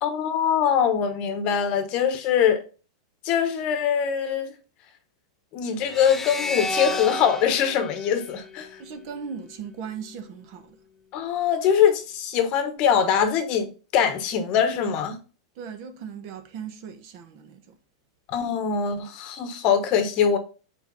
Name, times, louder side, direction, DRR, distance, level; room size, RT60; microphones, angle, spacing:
voice 1, 0.0-2.6 3.2-4.5 5.5-8.7 11.1-15.2 18.3-20.4, left 8 dB, 35° left, 1.1 m, -23 dB
sound 1, 5.9-9.2, left 2 dB, 10° left, 0.5 m, -32 dB
voice 2, 8.8-10.8 15.6-17.8, right 6 dB, 40° right, 1.1 m, -38 dB
5.1 x 4.6 x 5.4 m
supercardioid pair, 160°, 3 cm